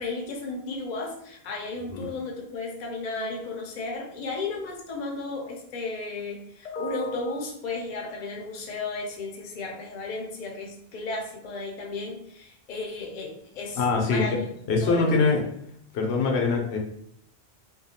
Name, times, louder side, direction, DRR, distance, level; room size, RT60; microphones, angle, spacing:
voice 1, 0.0-14.5 14.8-15.4, left 3 dB, 50° left, 0 dB, 0.6 m, -34 dB
voice 2, 13.8-14.4 14.7-15.4 15.9-16.8, left 4 dB, 80° left, 1 dB, 0.8 m, -23 dB
2.7 x 2.2 x 2.7 m, 0.70 s
omnidirectional pair, 1.1 m